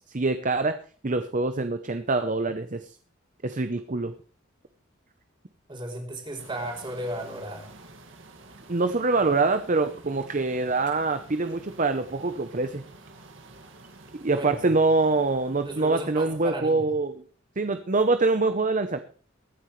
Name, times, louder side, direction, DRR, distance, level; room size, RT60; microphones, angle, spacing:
voice 1, 0.1-0.8 1.0-2.9 3.4-4.1 8.7-12.8 14.1-17.2 17.6-19.0, right 3 dB, 40° right, 9 dB, 0.8 m, -25 dB
voice 2, 5.7-7.7 14.3-14.6 15.6-16.8, right 1 dB, 25° right, 1 dB, 3.5 m, -35 dB
sound 1, 6.4-16.6, right 2 dB, 65° right, 2.1 m, -49 dB
23.0 x 9.7 x 3.2 m, 0.41 s
head